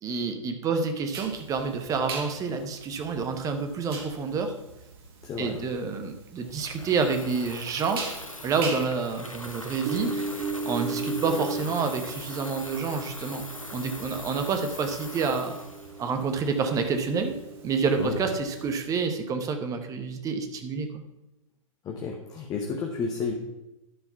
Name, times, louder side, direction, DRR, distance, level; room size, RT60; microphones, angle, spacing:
voice 1, 0.0-4.5 5.4-8.0 8.4-13.4 13.7-15.6 16.0-17.4 17.6-21.0, right 5 dB, 20° right, 6 dB, 1.0 m, -28 dB
sound 1, 1.1-18.8, right 4 dB, 45° right, 1.7 m, -38 dB
voice 2, 5.2-5.6 18.0-18.2 21.8-23.3, left 5 dB, 20° left, 1 dB, 1.0 m, -31 dB
Water tap faucet / Fill (with liquid), 6.5-16.7, left 1 dB, 85° left, 1.1 m, -41 dB
11.0 x 4.8 x 5.5 m, 0.95 s
figure-of-eight pair, 105°, 17 cm